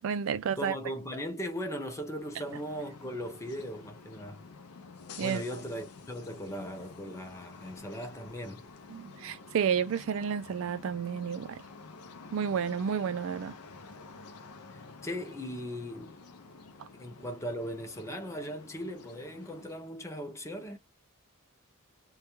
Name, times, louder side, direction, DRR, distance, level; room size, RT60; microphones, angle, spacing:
voice 1, 0.0-0.7 5.2-5.4 8.9-11.6 12.3-13.6 16.8-16.9, right 7 dB, 65° right, 0.3 m, -31 dB
voice 2, 0.6-4.4 5.2-8.6 14.7-16.1 17.0-20.8, equal, 15° left, 0.5 m, -38 dB
sound 1, 2.0-20.0, left 4 dB, 90° left, 0.5 m, -50 dB
2.3 x 2.1 x 2.9 m
head